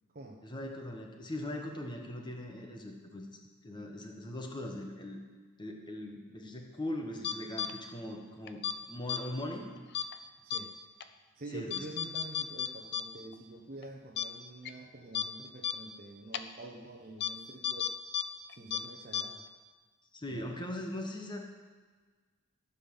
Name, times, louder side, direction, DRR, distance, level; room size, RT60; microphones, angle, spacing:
voice 1, 0.4-5.2 5.6-9.7 11.5-11.8 20.1-21.5, left 1 dB, 20° left, 2 dB, 1.2 m, -40 dB
sound 1, 7.2-7.7 8.5-8.7 9.1-9.2 9.9-10.1 10.5-10.6 11.0-11.1 11.7-13.0 13.3-13.4 13.8-13.9 14.2-14.3 14.6-14.7 15.1-15.2 15.6-15.7 16.3-16.4 17.2-17.3 17.6-18.2 18.5-18.8 19.1-19.2, left 8 dB, 50° left, 0.6 m, -32 dB
voice 2, 11.3-17.9 18.5-19.5 20.3-20.7, right 2 dB, 40° right, -2 dB, 1.0 m, -47 dB
14.5 x 5.6 x 7.2 m, 1.4 s
head